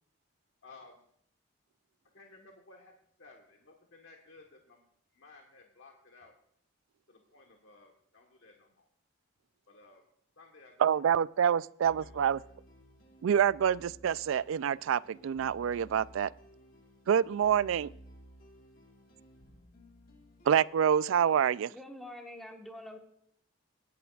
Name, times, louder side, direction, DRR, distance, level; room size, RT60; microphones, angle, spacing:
voice 1, 0.6-1.0 2.1-2.9 3.2-4.9 5.1-6.3 7.1-8.9 9.7-10.1 10.4-11.0 11.8-12.4 17.4-17.8, left 3 dB, 70° left, 1.3 m, -57 dB
voice 2, 10.8-12.4 13.2-16.3 17.1-17.9 20.5-21.7, right 8 dB, 75° right, 0.3 m, -27 dB
sound 1, 11.8-20.7, right 1 dB, 45° left, 1.7 m, -56 dB
voice 3, 21.7-23.0, left 1 dB, ahead, 1.3 m, -45 dB
18.5 x 10.5 x 2.4 m
head